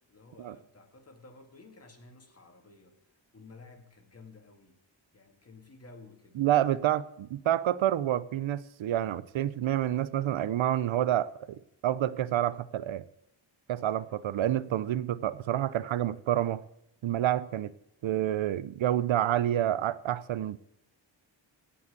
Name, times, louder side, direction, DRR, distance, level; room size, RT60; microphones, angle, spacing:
voice 1, 0.1-3.0 3.3-4.8 5.1-6.4, left 3 dB, 30° left, 2.1 m, -53 dB
voice 2, 6.4-13.0 13.7-16.6 17.0-17.7 18.0-20.6, right 12 dB, 80° right, 0.7 m, -28 dB
16.5 x 5.6 x 6.5 m
wide cardioid pair, 115°, 46 cm